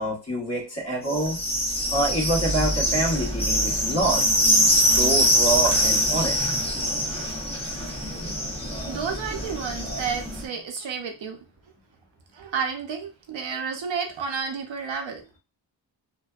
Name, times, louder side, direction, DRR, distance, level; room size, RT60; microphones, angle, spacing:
voice 1, 0.0-1.4 1.9-4.3 4.6-6.5, right 1 dB, 35° left, -2 dB, 1.1 m, -26 dB
sound 1, 1.1-10.4, equal, 15° left, 0.6 m, -24 dB
voice 2, 8.8-11.4 12.3-15.2, right 6 dB, 80° right, 4 dB, 0.7 m, -31 dB
2.6 x 2.2 x 2.3 m, 0.30 s
wide cardioid pair, 100°, 46 cm